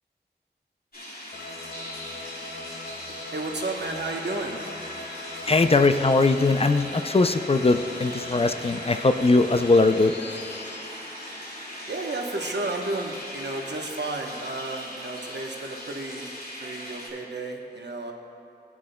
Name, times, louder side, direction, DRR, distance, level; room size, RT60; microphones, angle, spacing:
sound 1, 0.9-17.1, equal, 60° left, 2.2 m, -39 dB
sound 2, 1.3-12.7, left 2 dB, 85° left, 0.5 m, -41 dB
voice 1, 3.3-4.6 11.9-16.3 16.6-18.1, right 2 dB, 75° right, 1 dB, 1.0 m, -32 dB
voice 2, 5.5-10.1, left 3 dB, 35° left, 9 dB, 0.4 m, -20 dB
16.0 x 8.6 x 2.2 m, 2.8 s
wide cardioid pair, 50°, 18 cm